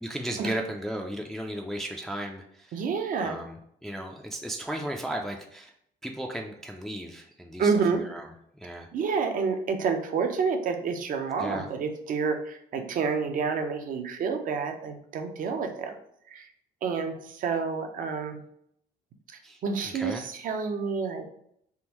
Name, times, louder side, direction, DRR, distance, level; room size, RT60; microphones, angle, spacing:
voice 1, 0.0-2.8 3.2-5.7 6.0-8.3 8.5-8.9 11.4-11.7 19.4-20.3, right 1 dB, ahead, 1 dB, 0.4 m, -35 dB
voice 2, 2.7-3.4 7.6-8.0 8.9-16.0 16.3-16.4 16.8-18.4 19.6-21.2, right 5 dB, 55° right, 6 dB, 0.6 m, -29 dB
3.6 x 2.5 x 2.9 m, 0.71 s
cardioid pair, 110°, 17 cm